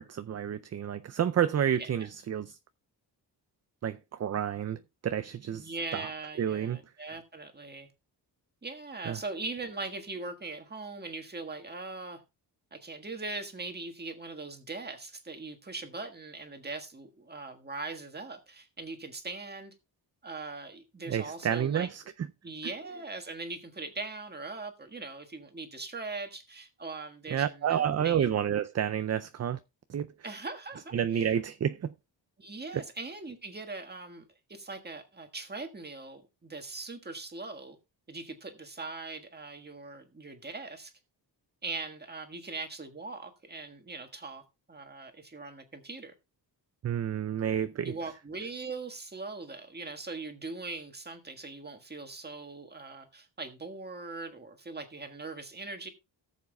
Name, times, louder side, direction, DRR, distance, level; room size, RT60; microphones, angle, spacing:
voice 1, 0.0-2.6 3.8-6.0 6.4-6.8 9.1-9.2 21.1-22.0 27.3-29.6 29.9-30.1 30.9-31.9 32.7-32.8 46.8-47.9, right 9 dB, 40° right, 0.4 m, -30 dB
voice 2, 5.5-7.9 8.6-12.2 12.7-19.7 20.2-21.9 22.4-28.3 30.2-31.3 32.4-37.8 38.1-40.9 41.6-44.4 44.7-46.1 47.8-55.9, right 3 dB, 20° right, 1.5 m, -41 dB
18.0 x 7.2 x 2.2 m
wide cardioid pair, 130°, 44 cm